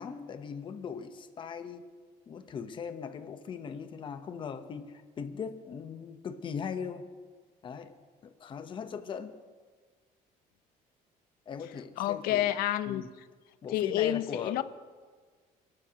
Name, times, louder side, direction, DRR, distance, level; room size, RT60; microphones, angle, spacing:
voice 1, 0.0-1.8 2.3-7.0 7.6-8.0 8.2-9.4 11.5-12.5 12.9-13.1 13.6-14.6, left 6 dB, 30° left, 1.0 m, -39 dB
voice 2, 12.0-13.0 13.7-14.6, left 13 dB, 75° left, 0.8 m, -29 dB
29.5 x 12.5 x 3.0 m
cardioid pair, 170°, 16 cm